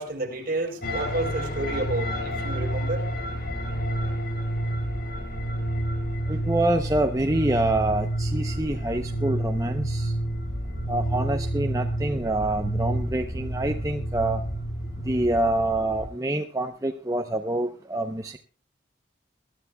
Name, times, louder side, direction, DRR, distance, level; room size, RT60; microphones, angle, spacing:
voice 1, 0.0-3.0, right 2 dB, 50° right, 2 dB, 3.7 m, -30 dB
sound 1, 0.8-16.1, right 1 dB, 55° left, 3.3 m, -29 dB
voice 2, 6.3-10.1 10.9-14.4 15.0-18.4, right 1 dB, 15° right, 4 dB, 0.7 m, -26 dB
22.5 x 12.5 x 2.3 m, 0.39 s
head